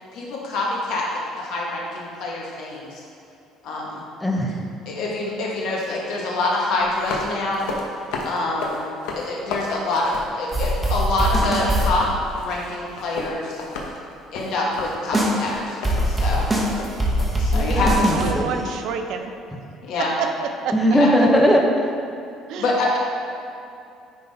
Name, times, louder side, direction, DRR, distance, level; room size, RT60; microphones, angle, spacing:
voice 1, 0.1-1.0 1.4-2.9 3.6-4.0 4.8-7.7 8.2-8.8 9.1-12.1 12.4-13.6 14.3-15.8 16.1-16.5 17.4-18.3 19.8-20.1 20.9-21.1 22.6-23.0, left 2 dB, 70° left, -3 dB, 1.6 m, -25 dB
voice 2, 4.2-4.6 17.5-18.7 20.7-21.9, equal, 5° left, 0 dB, 0.7 m, -19 dB
sound 1, 6.8-11.0 11.2-17.4, left 3 dB, 85° left, 1.0 m, -33 dB
sound 2, 10.5-11.9 15.1-15.4 15.8-18.2, equal, 15° right, 1.1 m, -21 dB
voice 3, 18.0-19.3 20.2-20.7 22.5-22.8, right 6 dB, 65° right, 6 dB, 0.6 m, -28 dB
9.7 x 4.0 x 4.3 m, 2.6 s
cardioid pair, 145°, 0 cm